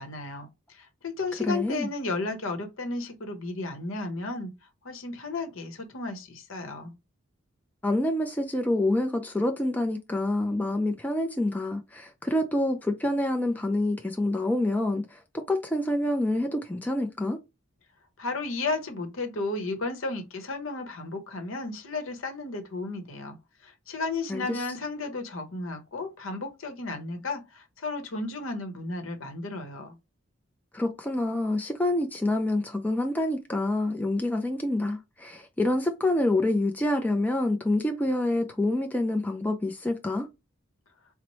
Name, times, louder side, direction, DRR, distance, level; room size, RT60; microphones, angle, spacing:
voice 1, 0.0-4.5 4.8-6.9 18.2-23.4 23.6-30.0, left 3 dB, 70° left, 0.8 m, -33 dB
voice 2, 1.5-1.9 7.8-17.4 24.3-24.6 30.7-40.3, left 1 dB, 10° left, 0.3 m, -27 dB
4.0 x 2.0 x 3.0 m
head